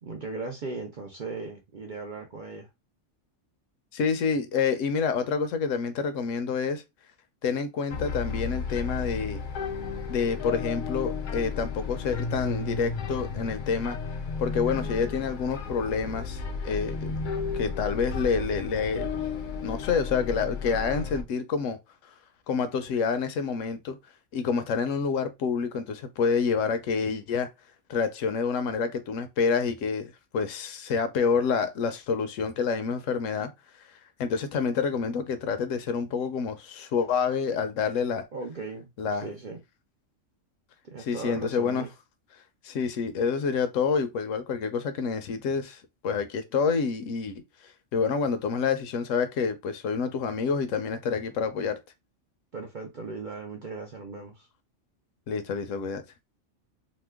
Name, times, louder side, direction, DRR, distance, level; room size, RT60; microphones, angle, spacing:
voice 1, 0.0-2.7 38.3-39.6 40.8-41.9 52.5-54.5, right 3 dB, 60° right, 0.5 m, -38 dB
voice 2, 3.9-6.8 7.4-9.4 10.1-14.0 14.4-17.1 17.5-19.1 19.6-21.8 22.0-22.1 22.5-24.0 24.3-27.5 27.9-33.5 33.8-38.3 39.0-39.3 41.0-41.9 42.6-51.8 55.3-56.0, left 5 dB, 75° left, 0.9 m, -28 dB
sound 1, 7.9-21.2, left 4 dB, 60° left, 0.5 m, -33 dB
2.9 x 2.1 x 3.4 m
omnidirectional pair, 1.4 m